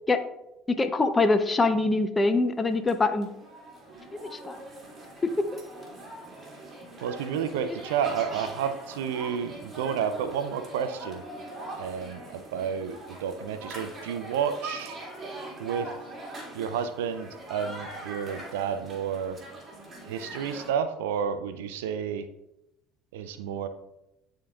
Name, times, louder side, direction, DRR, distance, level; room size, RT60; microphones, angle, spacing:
voice 1, 0.8-3.3 4.4-4.6 5.4-5.6, left 3 dB, 25° left, 9 dB, 0.7 m, -23 dB
sound 1, 2.6-20.7, right 2 dB, 30° right, 2.0 m, -42 dB
voice 2, 7.0-11.2 11.8-15.0 15.6-15.9 16.5-19.4 20.0-22.3 23.1-23.7, right 7 dB, 80° right, 11 dB, 0.4 m, -31 dB
11.0 x 3.7 x 2.4 m, 0.87 s
hypercardioid pair, 65°, 0 cm